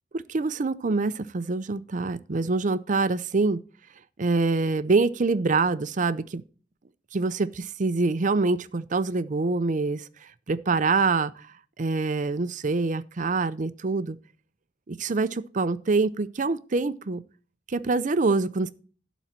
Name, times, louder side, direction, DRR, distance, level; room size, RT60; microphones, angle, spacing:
voice 1, 0.3-3.6 4.2-6.4 7.1-10.1 10.5-11.5 11.8-14.2 14.9-17.2 17.7-18.7, right 3 dB, 45° right, 0.5 m, -25 dB
11.5 x 4.0 x 7.3 m
head